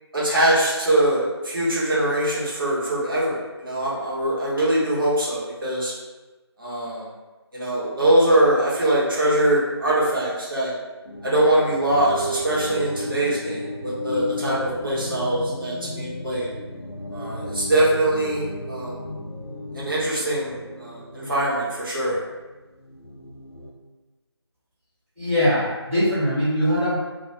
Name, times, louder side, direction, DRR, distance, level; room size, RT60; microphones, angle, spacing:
voice 1, 0.1-5.9 6.6-7.1 7.5-10.7 11.2-16.5 17.1-19.0 19.7-22.2, right 1 dB, 50° right, -7 dB, 0.8 m, -22 dB
sound 1, 11.0-23.7, left 1 dB, 65° left, 0.5 m, -34 dB
voice 2, 25.2-27.0, equal, 20° right, -14 dB, 1.0 m, -21 dB
2.2 x 2.1 x 2.8 m, 1.2 s
figure-of-eight pair, 165°, 14 cm